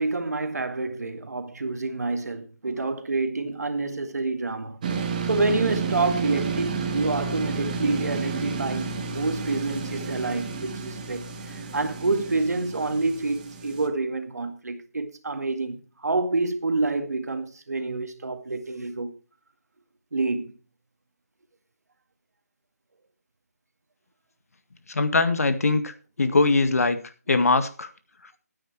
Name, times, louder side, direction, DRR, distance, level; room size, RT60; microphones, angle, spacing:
voice 1, 0.0-4.8 5.3-19.1 20.1-20.5, right 3 dB, 70° right, 2.1 m, -28 dB
sound 1, 4.8-13.9, right 5 dB, 30° right, 1.7 m, -31 dB
voice 2, 24.9-27.0 27.3-27.9, left 3 dB, 60° left, 1.9 m, -22 dB
13.5 x 9.5 x 4.7 m
figure-of-eight pair, 165°, 9 cm